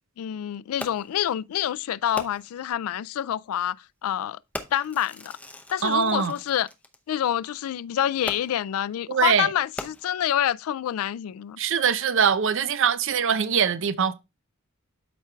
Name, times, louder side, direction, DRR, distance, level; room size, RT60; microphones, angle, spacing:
voice 1, 0.2-3.8 4.0-4.4 4.7-5.4 5.7-6.7 7.1-11.6, left 10 dB, 90° left, 0.3 m, -27 dB
Fireworks, 0.8-1.2 2.2-2.7 3.5-3.7 4.5-7.0 8.3-8.8 9.6-10.4 11.1-11.2, left 1 dB, 5° left, 0.7 m, -39 dB
voice 2, 5.8-6.3 9.1-9.5 11.6-14.1, right 7 dB, 65° right, 0.6 m, -22 dB
12.5 x 4.5 x 2.3 m
head